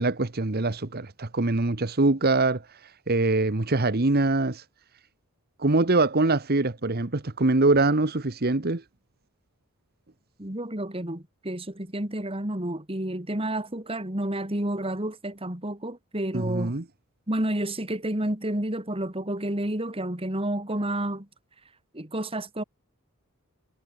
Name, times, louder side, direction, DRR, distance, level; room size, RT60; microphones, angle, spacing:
voice 1, 0.0-4.6 5.6-8.8 16.3-16.8, right 2 dB, 45° right, 1.2 m, -24 dB
voice 2, 10.4-16.7 17.3-21.3 21.9-22.6, right 1 dB, 25° right, 2.8 m, -30 dB
head